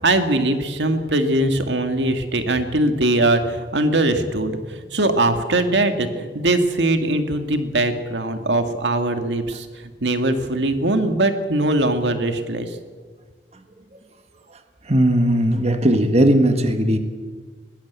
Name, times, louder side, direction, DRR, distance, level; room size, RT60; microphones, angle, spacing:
voice 1, 0.0-9.7 10.0-12.8, right 2 dB, 90° right, 7 dB, 2.0 m, -21 dB
voice 2, 14.8-17.0, right 1 dB, 40° right, 7 dB, 1.7 m, -17 dB
21.0 x 19.0 x 8.2 m, 1.5 s
head